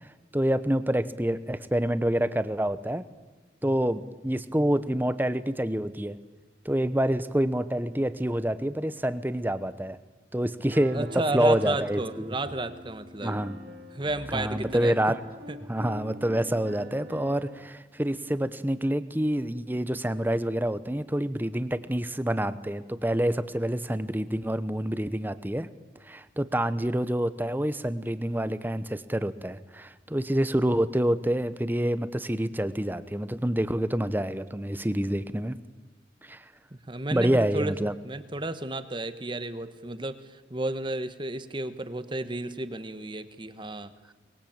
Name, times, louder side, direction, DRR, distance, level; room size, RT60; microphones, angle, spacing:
voice 1, 0.3-3.1 3.6-6.2 6.6-10.0 10.3-11.1 11.3-12.3 13.2-13.6 14.3-15.2 15.7-25.7 26.0-35.6 36.2-36.4 37.1-37.9, right 1 dB, 10° right, 13 dB, 0.9 m, -27 dB
Piano, 10.7-17.6, equal, 60° right, 3.1 m, -43 dB
voice 2, 10.9-13.4 13.9-14.9 15.5-15.6 36.9-37.8 38.0-43.9, right 2 dB, 25° right, 11 dB, 1.2 m, -32 dB
23.0 x 21.0 x 8.8 m, 1.2 s
head